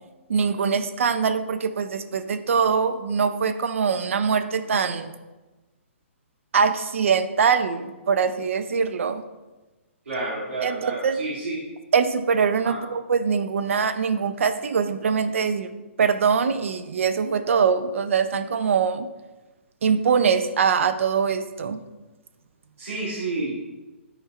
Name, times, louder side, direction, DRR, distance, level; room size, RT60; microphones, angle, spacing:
voice 1, 0.3-5.1 6.5-9.2 10.6-11.2 11.9-15.7 16.0-19.1 19.8-21.8, right 6 dB, 70° right, 10 dB, 0.5 m, -23 dB
voice 2, 10.0-11.6 12.6-12.7 22.8-23.5, right 2 dB, 85° right, -9 dB, 2.2 m, -30 dB
10.0 x 4.5 x 2.4 m, 1.1 s
hypercardioid pair, 145°, 7 cm